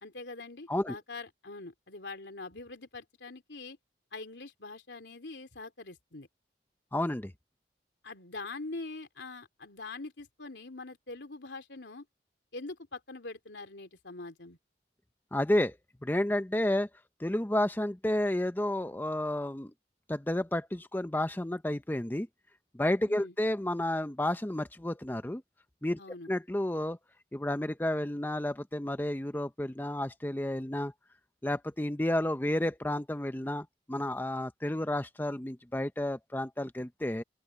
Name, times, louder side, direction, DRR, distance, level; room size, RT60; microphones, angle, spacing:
voice 1, 0.0-3.8 4.1-6.3 8.0-12.0 12.5-14.6 23.1-23.4 26.0-26.3, left 3 dB, 90° left, 3.3 m, -43 dB
voice 2, 6.9-7.3 15.3-15.8 16.0-16.9 17.2-19.7 20.1-22.3 22.7-25.4 25.8-26.0 26.3-27.0 27.3-30.9 31.4-37.2, left 1 dB, 10° left, 0.6 m, -31 dB
open air
head